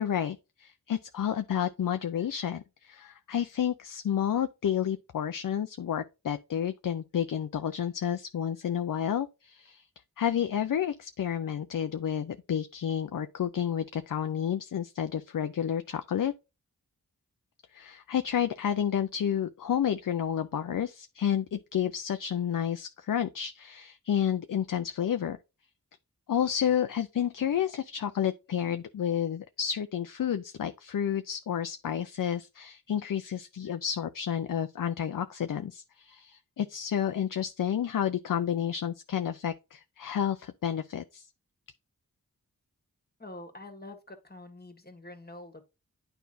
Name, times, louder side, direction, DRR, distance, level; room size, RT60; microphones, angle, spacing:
voice 1, 0.0-9.9 10.2-16.3 17.7-25.4 26.3-41.3, left 9 dB, 65° left, 0.5 m, -30 dB
voice 2, 43.2-45.6, left 2 dB, 25° left, 1.6 m, -46 dB
9.2 x 4.5 x 2.6 m
cardioid pair, 45°, 35 cm